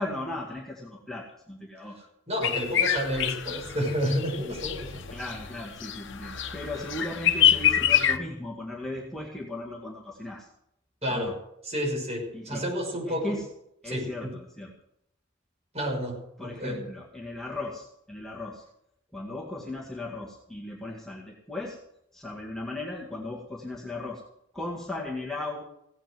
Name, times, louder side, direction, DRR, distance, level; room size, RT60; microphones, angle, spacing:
voice 1, 0.0-2.0 2.7-2.9 5.1-10.5 11.1-11.3 12.3-12.6 13.1-13.5 13.8-14.7 16.4-18.6 19.1-21.8 22.1-24.2 24.5-25.6, left 2 dB, ahead, -4 dB, 2.1 m, -37 dB
voice 2, 2.3-5.0 11.0-11.4 11.6-13.3 13.9-14.3 15.7-16.8, equal, 30° right, 0 dB, 6.1 m, -30 dB
sound 1, 2.4-8.2, left 10 dB, 65° left, 1.1 m, -26 dB
17.0 x 8.8 x 7.8 m, 0.77 s
head